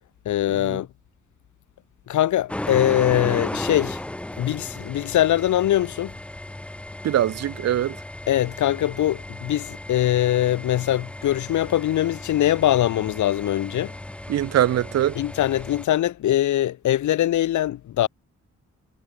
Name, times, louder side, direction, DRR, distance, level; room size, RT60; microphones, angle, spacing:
voice 1, 0.3-0.9 2.1-4.0 4.4-6.1 8.3-13.9 15.2-18.1, left 13 dB, 80° left, 0.6 m, -22 dB
sound 1, 2.5-15.9, left 1 dB, 5° left, 0.3 m, -35 dB
voice 2, 7.0-7.9 14.3-15.2, right 11 dB, 60° right, 0.5 m, -22 dB
wide cardioid pair, 135°, 29 cm